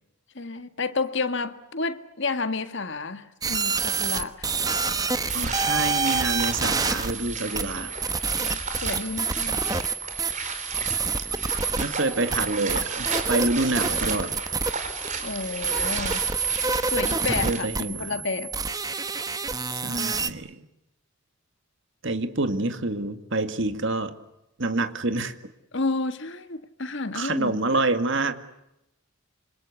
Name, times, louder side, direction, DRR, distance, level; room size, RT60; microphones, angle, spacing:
voice 1, 0.4-4.5 8.3-9.7 15.2-16.3 16.9-18.5 25.7-27.8, left 3 dB, 55° left, 1.7 m, -31 dB
sound 1, 3.4-20.3, right 5 dB, 15° right, 1.1 m, -28 dB
sound 2, 5.3-17.6, right 4 dB, 35° right, 4.7 m, -34 dB
voice 2, 5.3-7.9 11.8-14.4 17.4-18.3 19.8-20.7 22.0-24.2 24.6-25.3 27.1-28.4, right 2 dB, 55° right, 2.1 m, -27 dB
27.5 x 26.0 x 8.3 m
head